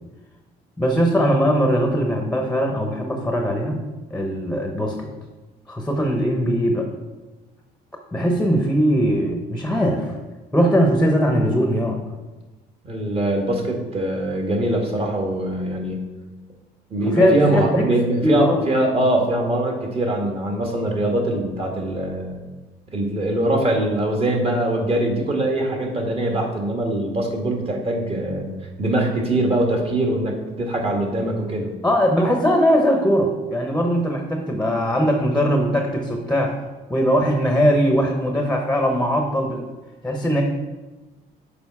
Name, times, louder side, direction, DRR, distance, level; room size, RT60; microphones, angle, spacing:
voice 1, 0.8-3.8 4.1-5.1 5.7-6.9 8.1-10.1 10.5-12.0 17.0-17.9 18.2-18.6 31.8-36.6 36.9-39.6 40.0-40.4, equal, 5° left, 2 dB, 0.9 m, -20 dB
voice 2, 12.8-16.1 16.9-22.4 22.9-31.7, right 1 dB, 35° right, 1 dB, 1.8 m, -22 dB
6.9 x 5.1 x 4.8 m, 1.2 s
cardioid pair, 110°, 17 cm